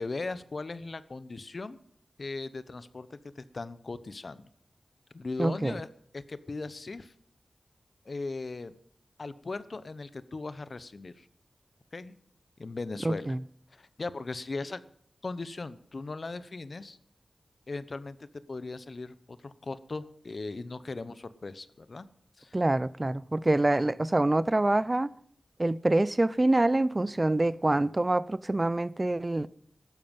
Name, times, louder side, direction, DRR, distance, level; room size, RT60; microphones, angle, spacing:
voice 1, 0.0-1.8 2.2-4.5 5.1-5.9 6.1-7.1 8.0-8.7 9.2-11.3 11.9-12.2 12.6-13.4 13.7-14.8 15.2-17.0 17.7-18.2 18.5-22.1 22.4-22.5, left 3 dB, 60° left, 0.9 m, -38 dB
voice 2, 5.4-5.7 13.0-13.4 22.5-25.1 25.6-29.5, right 2 dB, 30° right, 0.5 m, -26 dB
15.0 x 12.0 x 5.4 m
wide cardioid pair, 55°, 0 cm